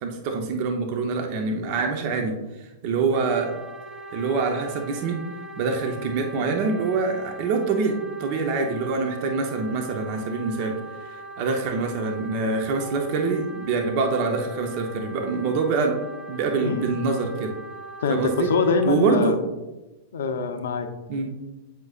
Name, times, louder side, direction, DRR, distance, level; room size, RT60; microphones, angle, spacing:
voice 1, 0.0-3.5 4.1-5.2 5.6-15.9 16.3-17.5 18.1-18.5 18.9-19.4 21.1-21.4, right 4 dB, 55° right, 3 dB, 0.8 m, -25 dB
Wind instrument woodwind instrument, 3.1-19.0, right 1 dB, 15° right, 1.2 m, -41 dB
voice 2, 16.6-17.1 18.0-19.3 20.1-20.9, left 5 dB, 75° left, 8 dB, 0.6 m, -24 dB
7.8 x 5.2 x 2.5 m, 1.1 s
hypercardioid pair, 105°, 0 cm